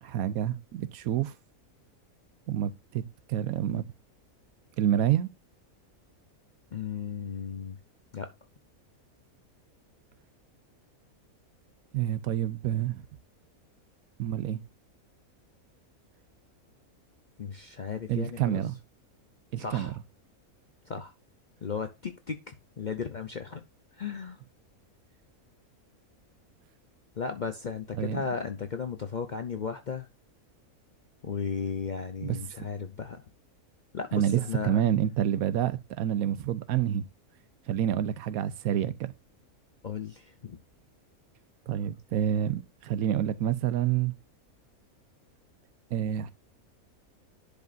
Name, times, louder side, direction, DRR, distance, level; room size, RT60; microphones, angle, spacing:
voice 1, 0.0-1.3 2.5-3.0 3.3-3.8 4.8-5.3 11.9-13.0 14.2-14.6 18.1-18.8 19.5-19.9 28.0-28.2 32.2-32.4 34.1-37.0 37.7-39.1 41.7-44.1 45.9-46.3, right 10 dB, 80° right, 1.1 m, -28 dB
voice 2, 6.7-7.8 8.1-8.3 17.4-18.6 19.6-20.0 20.9-21.1 21.6-23.6 24.0-24.4 27.2-30.1 31.2-33.2 33.9-34.8 39.8-40.6, left 6 dB, 50° left, 0.6 m, -35 dB
10.5 x 5.2 x 2.6 m
omnidirectional pair, 1.5 m